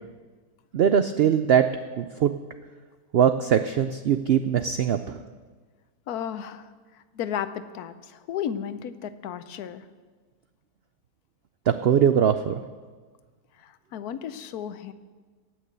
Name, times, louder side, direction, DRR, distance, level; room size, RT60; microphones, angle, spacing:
voice 1, 0.7-1.7 2.0-2.3 3.1-5.2 11.8-12.5, right 8 dB, 90° right, 10 dB, 0.5 m, -21 dB
voice 2, 6.1-9.8 13.6-14.9, left 9 dB, 80° left, 12 dB, 1.2 m, -34 dB
17.0 x 6.2 x 8.0 m, 1.4 s
omnidirectional pair, 1.6 m